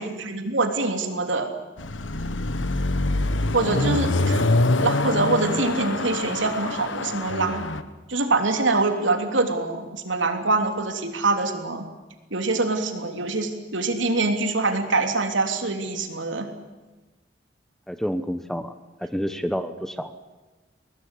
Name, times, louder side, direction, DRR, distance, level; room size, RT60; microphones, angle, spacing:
voice 1, 0.0-1.5 3.5-4.4 4.8-7.6 8.1-11.8 12.3-16.5, right 3 dB, 80° right, 5 dB, 3.3 m, -24 dB
Car passing by / Accelerating revving vroom, 1.8-7.8, left 2 dB, 85° left, 1.4 m, -25 dB
voice 2, 3.6-3.9 17.9-18.7 19.0-20.1, equal, ahead, 10 dB, 1.1 m, -29 dB
22.5 x 19.0 x 10.0 m, 1.2 s
head